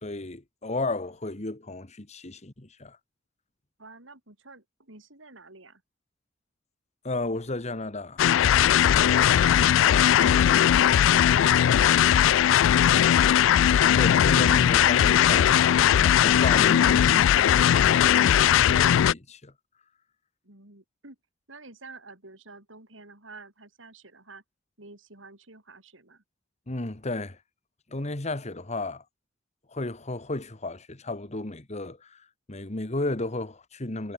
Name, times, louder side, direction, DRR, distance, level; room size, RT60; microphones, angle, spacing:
voice 1, 0.0-3.0 7.0-8.2 13.9-19.5 26.7-27.4 27.9-29.0 29.7-34.1, left 2 dB, 35° left, 1.6 m, -33 dB
voice 2, 3.8-5.8 9.2-12.0 20.4-21.2 21.5-24.4 24.8-26.2, right 3 dB, 80° right, 5.5 m, -48 dB
sound 1, 8.2-19.1, left 10 dB, 80° left, 0.3 m, -19 dB
head